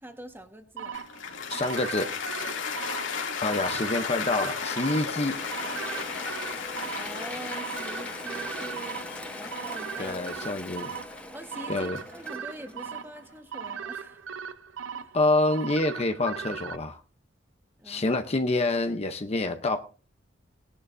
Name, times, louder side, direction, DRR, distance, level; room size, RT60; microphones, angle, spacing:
voice 1, 0.0-1.1 7.0-9.0 9.3-10.5 11.3-14.3 14.9-15.2 17.8-18.1, right 1 dB, 10° right, 5 dB, 1.4 m, -44 dB
sound 1, 0.8-16.8, right 7 dB, 80° right, 0.7 m, -39 dB
Cheering / Applause, 0.9-13.2, left 5 dB, 80° left, 2.6 m, -35 dB
voice 2, 1.5-2.1 3.4-5.4 10.0-10.9 11.7-12.0 15.1-17.0 17.9-19.8, left 2 dB, 35° left, 6 dB, 0.8 m, -27 dB
Mechanisms / Drill, 4.7-13.3, left 1 dB, 5° left, 1.2 m, -42 dB
19.0 x 11.0 x 2.6 m, 0.38 s
head